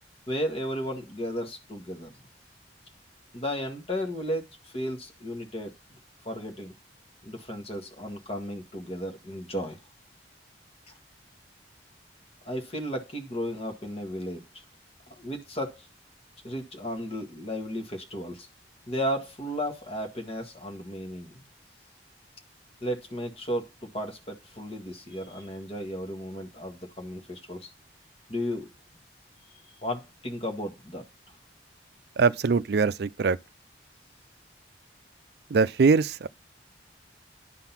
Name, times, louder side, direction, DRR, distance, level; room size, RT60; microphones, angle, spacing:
voice 1, 0.3-2.1 3.3-5.7 6.3-6.7 7.2-9.8 12.4-14.6 15.2-15.9 16.4-18.5 18.9-21.5 22.8-27.7 28.3-28.7 29.8-31.1, equal, 35° left, 1.8 m, -34 dB
voice 2, 32.2-33.4 35.5-36.3, right 4 dB, 60° right, 0.4 m, -22 dB
10.5 x 3.9 x 5.9 m
head